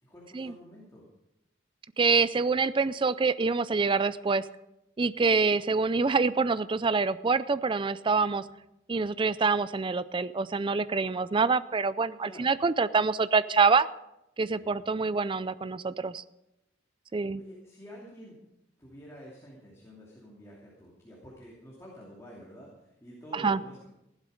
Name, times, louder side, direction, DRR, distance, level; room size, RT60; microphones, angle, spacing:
voice 1, 0.0-1.0 5.1-5.3 12.2-12.5 14.5-14.7 17.1-18.4 18.8-23.9, equal, 15° left, -5 dB, 2.8 m, -49 dB
voice 2, 2.0-4.4 5.0-8.4 8.9-13.9 14.4-16.2 17.1-17.4 23.3-23.6, right 4 dB, 25° right, 16 dB, 0.4 m, -26 dB
15.5 x 11.5 x 5.1 m, 0.88 s
head